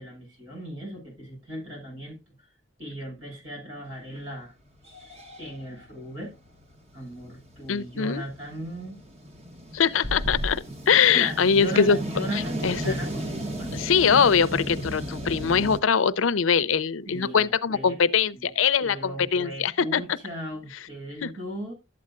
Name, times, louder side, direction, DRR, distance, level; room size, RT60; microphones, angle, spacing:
voice 1, 0.0-2.3 2.8-4.5 5.0-5.1 5.4-6.3 6.9-9.0 10.6-10.7 11.1-13.7 17.1-18.0 18.3-18.5 18.8-21.7, equal, 85° right, 6.6 m, -37 dB
sound 1, 4.2-4.3 4.7-15.8, equal, 35° right, 1.1 m, -36 dB
voice 2, 7.7-8.2 9.7-12.0 12.6-13.0 13.7-20.0 21.2-21.3, left 6 dB, 90° left, 0.6 m, -22 dB
sound 2, 10.0-10.6, equal, 55° right, 0.7 m, -30 dB
12.0 x 8.5 x 2.4 m
head